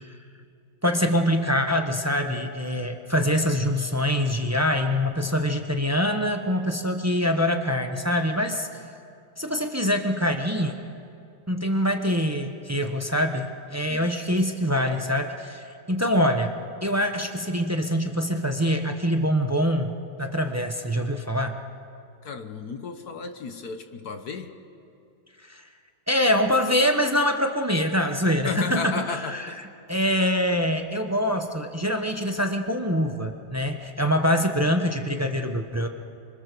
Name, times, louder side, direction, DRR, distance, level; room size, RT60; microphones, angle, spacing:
voice 1, 0.8-8.7 9.4-10.8 11.5-16.5 16.8-19.9 20.2-21.6 25.4-25.6 26.1-35.9, equal, 20° right, 5 dB, 0.4 m, -24 dB
voice 2, 22.2-24.5 28.4-29.7, left 4 dB, 50° left, 8 dB, 1.4 m, -33 dB
26.0 x 25.0 x 6.9 m, 2.4 s
omnidirectional pair, 2.4 m